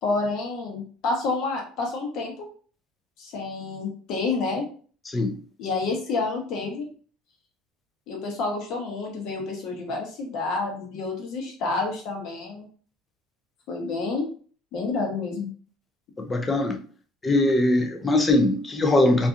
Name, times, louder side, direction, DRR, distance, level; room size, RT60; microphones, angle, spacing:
voice 1, 0.0-2.3 3.2-4.7 5.6-6.9 8.1-12.7 13.7-14.3 14.7-15.5, left 3 dB, 55° left, 1 dB, 0.9 m, -29 dB
voice 2, 5.1-5.4 16.2-16.8 17.2-19.3, left 2 dB, 15° left, 4 dB, 0.4 m, -21 dB
2.7 x 2.4 x 2.4 m, 0.42 s
cardioid pair, 155°, 0 cm